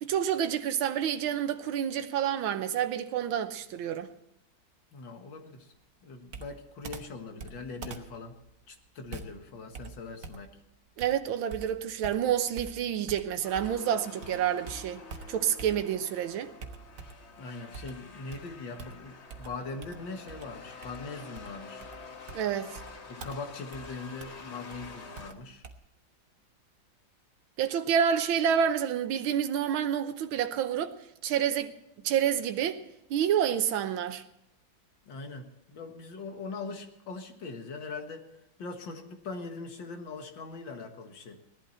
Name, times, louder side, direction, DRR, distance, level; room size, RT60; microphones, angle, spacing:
voice 1, 0.0-4.1 11.0-15.0 15.3-16.5 22.3-22.8 27.6-30.9 31.2-31.7 32.0-32.8 33.1-34.2, right 9 dB, 80° right, 1.7 m, -28 dB
voice 2, 4.9-5.7 6.0-8.4 8.7-10.5 17.4-21.9 23.1-25.6 35.1-38.3 38.6-41.4, left 3 dB, 65° left, 2.2 m, -41 dB
Computer keyboard, 6.3-13.9 14.2-16.1 16.6-17.3 17.7-25.7, right 5 dB, 50° right, 1.2 m, -46 dB
sound 1, 13.4-25.3, left 4 dB, 40° left, 1.1 m, -48 dB
18.0 x 11.5 x 4.4 m
omnidirectional pair, 2.2 m